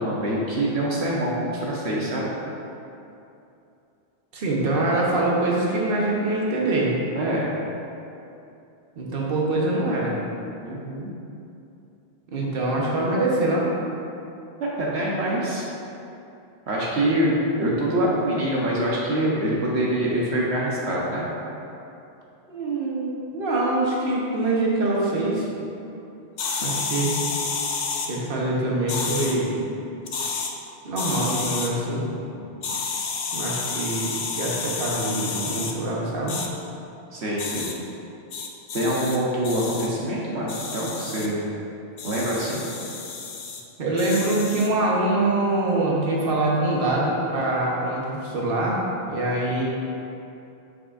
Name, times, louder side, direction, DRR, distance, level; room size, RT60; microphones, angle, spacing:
voice 1, 0.0-2.3 7.1-7.5 10.6-11.1 14.6-15.6 16.7-21.2 32.3-32.8 37.1-37.7 38.7-41.4 42.0-42.7, right 1 dB, 80° right, -5 dB, 1.2 m, -25 dB
voice 2, 4.3-7.0 9.0-10.2 12.3-13.7 22.5-25.5 26.6-27.1 28.1-29.6 30.8-32.1 33.3-36.4 43.8-49.6, right 2 dB, 60° right, -4 dB, 1.2 m, -24 dB
sound 1, 26.4-28.1 28.9-29.4 30.0-30.5 31.0-31.7 32.6-35.7 36.3-36.5 37.4-37.7 38.3-39.2 39.4-39.9 40.5-41.3 42.0-43.6 44.0-44.7, left 5 dB, 60° left, 0.8 m, -30 dB
7.9 x 6.3 x 2.5 m, 2.7 s
omnidirectional pair, 1.1 m